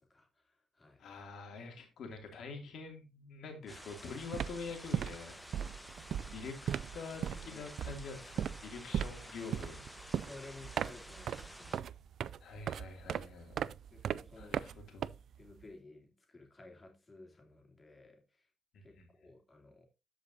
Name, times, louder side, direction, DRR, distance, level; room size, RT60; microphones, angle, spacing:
voice 1, 0.0-1.1 7.3-7.7 10.1-11.8 13.9-14.7 15.4-18.5 18.8-19.9, left 2 dB, 25° left, 2.8 m, -55 dB
voice 2, 1.0-5.3 6.3-9.8 12.4-13.6 14.4-15.1 18.7-19.1, left 4 dB, 70° left, 2.6 m, -46 dB
sound 1, 3.7-11.8, equal, 5° left, 1.2 m, -52 dB
sound 2, 3.7-3.9 4.2-15.6, right 9 dB, 65° right, 0.3 m, -38 dB
13.5 x 5.1 x 2.7 m
cardioid pair, 90°, 0 cm